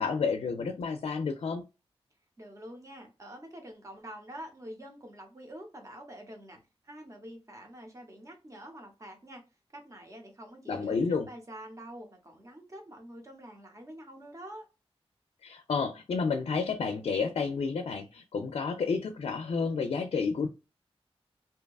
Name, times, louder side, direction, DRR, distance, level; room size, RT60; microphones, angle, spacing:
voice 1, 0.0-1.6 10.7-11.3 15.4-20.5, left 5 dB, 70° left, 0.4 m, -30 dB
voice 2, 2.4-9.4 9.7-14.7, right 1 dB, 30° right, 0.9 m, -46 dB
2.8 x 2.2 x 2.3 m
wide cardioid pair, 105°, 10 cm